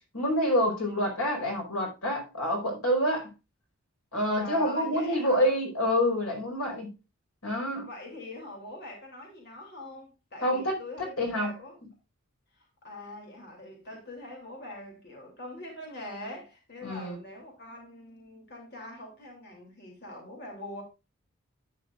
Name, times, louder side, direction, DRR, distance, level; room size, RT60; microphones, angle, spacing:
voice 1, 0.1-3.3 4.1-6.9 7.4-7.9 10.4-10.8 11.2-11.5 16.8-17.2, equal, 85° left, 4.9 m, -27 dB
voice 2, 4.4-5.5 7.8-11.8 12.5-20.8, left 1 dB, 50° left, 2.9 m, -43 dB
11.0 x 9.6 x 2.4 m
head